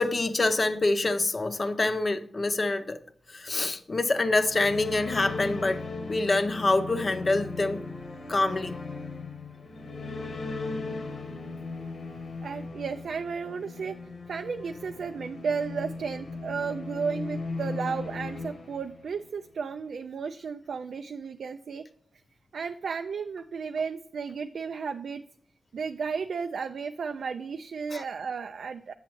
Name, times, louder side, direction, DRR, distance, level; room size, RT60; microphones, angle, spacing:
voice 1, 0.0-3.0 3.3-7.8 8.3-8.7 27.9-28.0, left 2 dB, 40° left, 0.6 m, -26 dB
sound 1, 4.2-19.4, left 3 dB, 70° left, 1.0 m, -37 dB
voice 2, 12.4-21.8 22.5-25.2 25.7-28.9, right 5 dB, 85° right, 0.3 m, -33 dB
8.2 x 7.1 x 3.0 m
wide cardioid pair, 90°, 0 cm